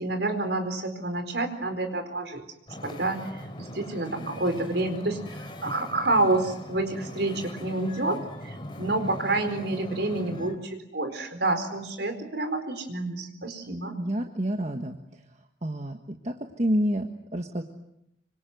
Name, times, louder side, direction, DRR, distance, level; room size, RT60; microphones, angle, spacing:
voice 1, 0.0-2.4 2.8-3.3 3.6-14.0, right 2 dB, 65° right, 8 dB, 4.4 m, -28 dB
Wind / Ocean, 2.7-10.6, equal, 25° left, 3.0 m, -41 dB
voice 2, 14.0-15.2 15.6-17.6, equal, 35° right, 4 dB, 1.5 m, -29 dB
26.0 x 25.5 x 7.9 m, 0.80 s
head